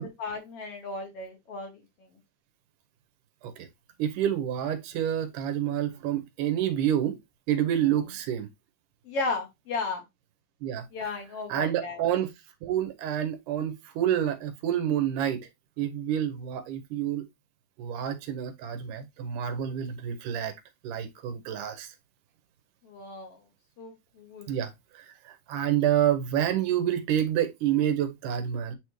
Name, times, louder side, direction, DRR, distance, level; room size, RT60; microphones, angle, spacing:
voice 1, 0.0-1.8 9.1-10.0 10.9-12.0 22.8-23.4 23.8-24.5, left 3 dB, 55° left, 2.0 m, -35 dB
voice 2, 4.0-7.2 7.5-8.5 10.6-10.9 11.5-12.3 12.6-15.5 15.8-17.3 17.8-20.5 20.8-21.9 24.5-28.7, right 10 dB, 90° right, 2.5 m, -28 dB
9.0 x 3.5 x 3.0 m
omnidirectional pair, 3.6 m